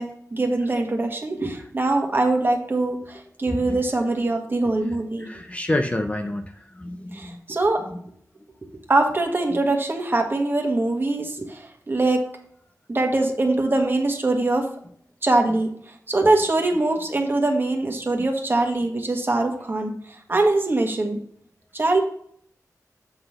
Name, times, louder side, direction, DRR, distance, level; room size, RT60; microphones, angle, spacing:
voice 1, 0.0-5.3 7.1-7.8 8.9-12.2 12.9-14.7 15.2-21.2 21.7-22.0, right 2 dB, 35° right, 3 dB, 1.5 m, -23 dB
voice 2, 3.5-3.8 5.2-7.4 7.8-8.0, left 1 dB, 20° left, 5 dB, 0.6 m, -28 dB
7.9 x 3.9 x 6.4 m, 0.62 s
wide cardioid pair, 115°, 6 cm